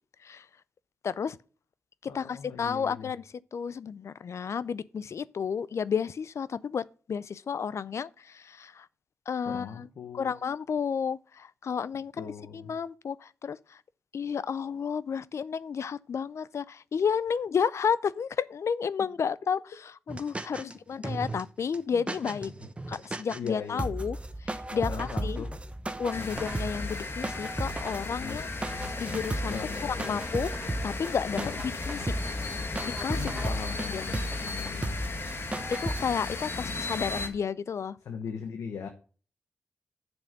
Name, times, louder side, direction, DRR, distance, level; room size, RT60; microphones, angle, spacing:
voice 1, 1.0-1.4 2.1-3.3 3.5-6.8 7.1-8.9 9.3-9.9 10.1-13.6 14.1-22.5 22.9-24.2 24.7-25.5 26.0-28.5 29.0-29.6 30.1-30.5 30.8-31.4 31.9-32.1 32.8-33.2 33.9-34.1 35.7-38.0, left 6 dB, 65° left, 0.4 m, -31 dB
voice 2, 2.1-3.1 9.5-10.3 12.2-12.7 20.6-20.7 21.0-21.1 21.9-22.0 23.3-23.9 24.7-25.6 26.2-26.5 28.2-28.4 29.5-30.1 31.3-31.6 33.1-35.0 38.0-38.9, left 6 dB, 90° left, 1.0 m, -39 dB
sound 1, 20.1-20.7 21.0-21.4 21.7-21.8 22.1-23.5 23.8-36.0, right 1 dB, 25° right, 1.0 m, -35 dB
sound 2, 26.1-37.3, left 3 dB, 50° left, 1.6 m, -36 dB
7.3 x 6.1 x 6.6 m
cardioid pair, 55°, 5 cm